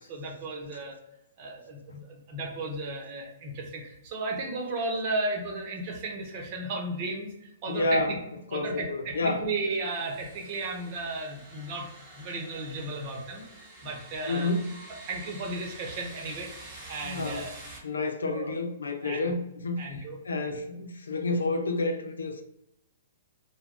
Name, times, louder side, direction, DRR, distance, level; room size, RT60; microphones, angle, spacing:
voice 1, 0.1-1.0 1.4-8.2 8.5-14.5 15.1-16.5 16.9-17.5 18.3-18.6 19.0-19.2 19.8-20.2 20.4-20.6, right 2 dB, 40° right, 1 dB, 0.8 m, -34 dB
voice 2, 7.7-8.1 8.5-9.4 14.3-14.7 17.0-17.5 17.8-22.4, left 2 dB, 80° left, 6 dB, 0.4 m, -30 dB
sound 1, 9.8-17.8, right 2 dB, 20° right, 1.1 m, -47 dB
2.3 x 2.2 x 3.6 m, 0.83 s
hypercardioid pair, 125°, 0 cm